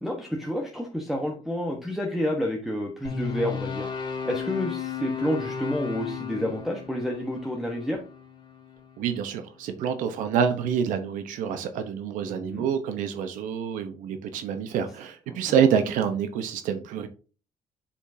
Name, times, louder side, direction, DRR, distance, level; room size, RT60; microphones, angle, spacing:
voice 1, 0.0-3.9 4.2-8.0 12.3-12.7 15.3-15.4, left 1 dB, ahead, 1.2 m, -29 dB
sound 1, 3.0-9.3, left 6 dB, 35° left, 2.3 m, -35 dB
voice 2, 9.0-17.1, right 7 dB, 85° right, 1.0 m, -27 dB
7.2 x 7.1 x 2.8 m
cardioid pair, 105°, 13 cm